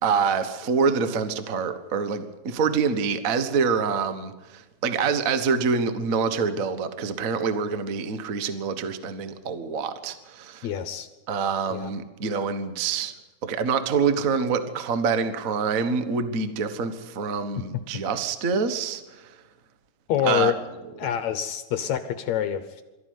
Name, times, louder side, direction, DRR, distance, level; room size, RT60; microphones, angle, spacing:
voice 1, 0.0-10.7 11.3-13.1 13.4-19.3 20.2-20.5, right 5 dB, 90° right, 10 dB, 0.7 m, -26 dB
voice 2, 10.6-11.1 11.7-11.9 20.1-20.6 21.0-22.8, left 10 dB, 65° left, 10 dB, 2.1 m, -26 dB
23.0 x 14.0 x 9.6 m, 1.1 s
omnidirectional pair, 3.8 m